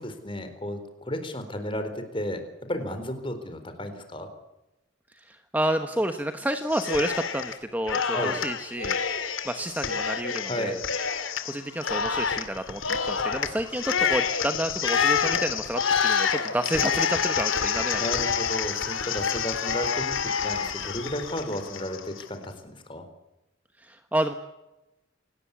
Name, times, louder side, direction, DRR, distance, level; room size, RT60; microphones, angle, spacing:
voice 1, 0.0-4.3 8.1-8.4 10.5-10.8 18.0-23.0, equal, 25° left, 8 dB, 4.1 m, -33 dB
voice 2, 5.1-9.0 9.4-10.8 11.5-18.0 23.8-24.3, right 1 dB, 10° right, 7 dB, 1.2 m, -30 dB
Cheering, 6.7-7.6 7.9-22.2, left 6 dB, 85° left, 2.6 m, -28 dB
27.5 x 19.0 x 8.4 m, 0.97 s
head